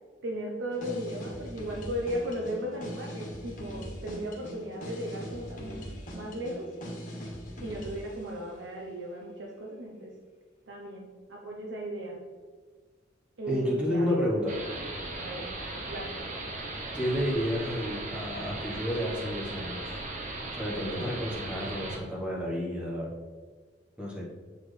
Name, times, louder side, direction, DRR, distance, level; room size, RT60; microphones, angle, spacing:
voice 1, 0.2-5.8 6.1-6.7 7.6-10.1 10.7-12.2 13.4-14.3 15.2-15.5 15.9-16.2, equal, 75° right, -1 dB, 0.8 m, -36 dB
sound 1, 0.7-8.1, equal, 45° left, 1.4 m, -40 dB
voice 2, 13.5-14.6 16.9-20.0 20.6-23.1 24.0-24.2, equal, 5° right, -4 dB, 1.1 m, -31 dB
sound 2, 14.5-22.0, right 2 dB, 45° right, 0.9 m, -37 dB
7.5 x 4.3 x 3.3 m, 1.5 s
head